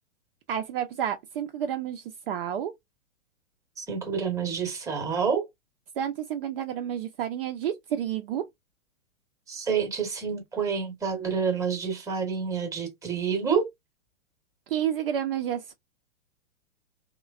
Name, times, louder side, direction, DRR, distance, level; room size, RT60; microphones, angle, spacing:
voice 1, 0.5-2.7 6.0-8.4 14.7-15.7, right 9 dB, 50° right, 0.5 m, -30 dB
voice 2, 3.8-5.5 9.5-13.7, right 6 dB, 10° right, 0.9 m, -28 dB
3.1 x 2.2 x 2.3 m
hypercardioid pair, 115°, 38 cm